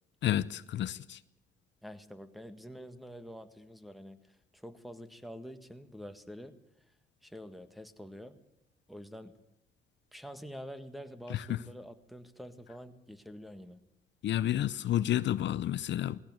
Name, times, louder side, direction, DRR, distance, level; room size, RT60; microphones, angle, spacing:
voice 1, 0.2-1.2 11.3-11.6 14.2-16.2, left 12 dB, 65° left, 0.7 m, -30 dB
voice 2, 1.8-6.5 7.2-8.4 8.9-9.4 10.1-13.8, equal, ahead, 1.7 m, -47 dB
19.0 x 16.5 x 9.3 m
cardioid pair, 90°, 20 cm